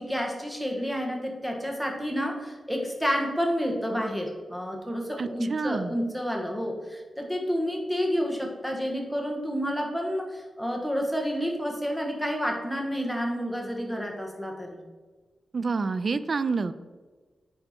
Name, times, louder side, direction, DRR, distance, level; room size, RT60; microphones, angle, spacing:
voice 1, 0.0-14.8, equal, ahead, 1 dB, 1.4 m, -30 dB
voice 2, 5.2-5.9 15.5-16.7, right 4 dB, 50° right, 13 dB, 0.4 m, -28 dB
10.0 x 4.4 x 4.4 m, 1.4 s
wide cardioid pair, 110°, 0 cm